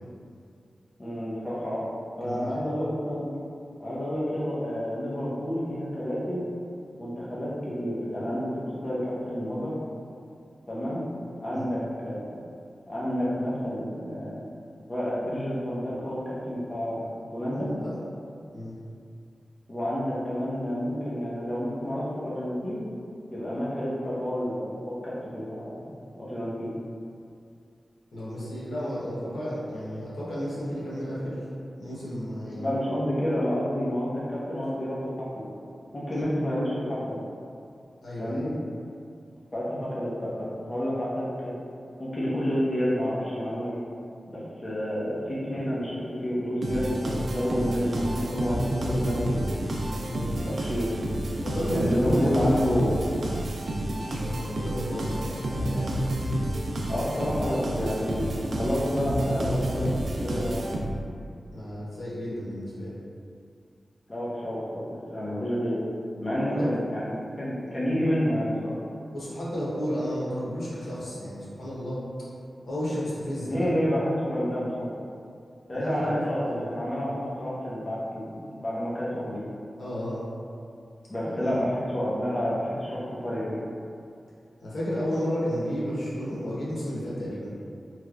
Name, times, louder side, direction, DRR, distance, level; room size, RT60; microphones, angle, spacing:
voice 1, 1.0-1.9 2.2-3.3 3.8-6.4 7.0-9.7 10.7-11.0 11.4-12.4 12.9-14.5 14.9-17.7 19.7-22.8 23.3-26.7 32.6-35.4 35.9-37.2 38.2-38.5 39.5-41.6 42.0-43.8 44.3-49.7 50.4-51.0 51.7-52.9 56.9-60.7 64.1-65.8 66.2-67.1 67.4-68.8 73.5-74.9 75.7-79.4 81.1-83.6, equal, 25° left, -8 dB, 0.8 m, -29 dB
voice 2, 2.2-2.5 11.5-11.6 17.5-17.9 18.5-18.7 28.1-31.5 31.7-32.7 36.1-36.2 38.0-38.5 50.0-50.5 51.4-52.9 53.9-55.9 61.5-63.0 66.5-66.7 69.1-72.0 72.7-73.7 75.7-76.6 79.8-80.2 81.2-81.6 84.6-87.5, equal, 80° left, -8 dB, 1.0 m, -32 dB
sound 1, 46.6-61.2, right 1 dB, 75° right, 0.4 m, -29 dB
3.2 x 2.9 x 2.4 m, 2.4 s
wide cardioid pair, 115°, 0 cm